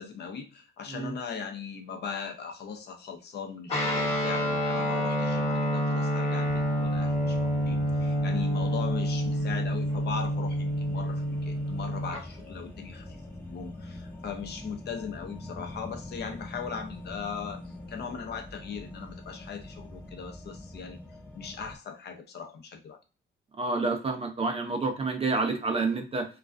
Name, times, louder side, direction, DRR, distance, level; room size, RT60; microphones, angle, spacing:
voice 1, 0.0-13.2 13.5-21.0 21.4-23.0, left 6 dB, 55° left, 5 dB, 0.6 m, -39 dB
Guitar, 3.7-12.2, equal, 30° left, 1.1 m, -28 dB
sound 1, 6.4-21.8, left 1 dB, 10° left, 0.7 m, -44 dB
voice 2, 23.6-26.3, right 3 dB, 30° right, 4 dB, 0.5 m, -28 dB
2.3 x 2.2 x 2.4 m, 0.31 s
cardioid pair, 90°, 20 cm